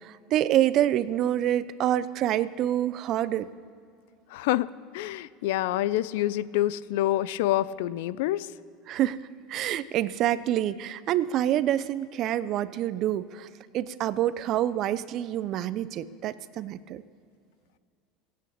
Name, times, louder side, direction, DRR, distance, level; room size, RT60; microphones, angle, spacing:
voice 1, 0.0-3.5 8.9-13.5 13.7-17.0, right 12 dB, 50° right, 16 dB, 0.7 m, -27 dB
voice 2, 4.3-4.7 4.9-8.5, left 14 dB, 80° left, 18 dB, 0.5 m, -27 dB
16.0 x 8.8 x 8.7 m, 2.4 s
supercardioid pair, 105°, 0 cm